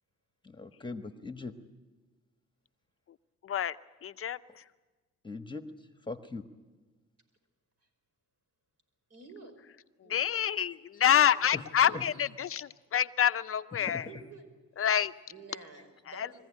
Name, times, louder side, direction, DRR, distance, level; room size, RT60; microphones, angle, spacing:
voice 1, 0.4-1.5 5.2-5.6 6.1-6.4 11.5-11.6 11.9-12.1, left 3 dB, 15° left, 8 dB, 1.3 m, -40 dB
voice 2, 3.4-3.8 4.0-4.4 10.1-14.0 14.8-15.1 16.1-16.3, left 9 dB, 45° left, 12 dB, 0.6 m, -27 dB
voice 3, 9.1-9.5 10.0-10.4 11.0-11.5 11.8-12.1 13.8-14.5 14.8-14.9 15.3-16.3, right 3 dB, 55° right, 5 dB, 5.5 m, -50 dB
23.0 x 15.0 x 10.0 m, 1.3 s
cardioid pair, 90°, 30 cm